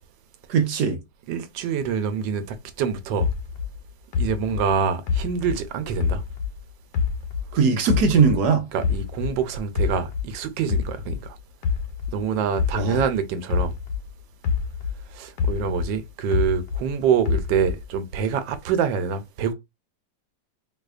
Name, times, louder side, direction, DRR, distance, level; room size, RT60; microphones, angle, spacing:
voice 1, 0.5-1.0 7.5-8.7 12.7-13.0, right 5 dB, 70° right, 1.2 m, -20 dB
voice 2, 1.3-3.3 4.2-6.2 8.7-11.4 12.1-13.7 15.1-19.5, right 6 dB, 85° right, 1.3 m, -26 dB
sound 1, 3.2-6.6 6.9-9.4 9.8-14.1 14.4-16.9 17.3-18.0, left 6 dB, 70° left, 1.1 m, -26 dB
3.9 x 2.7 x 2.4 m
omnidirectional pair, 2.0 m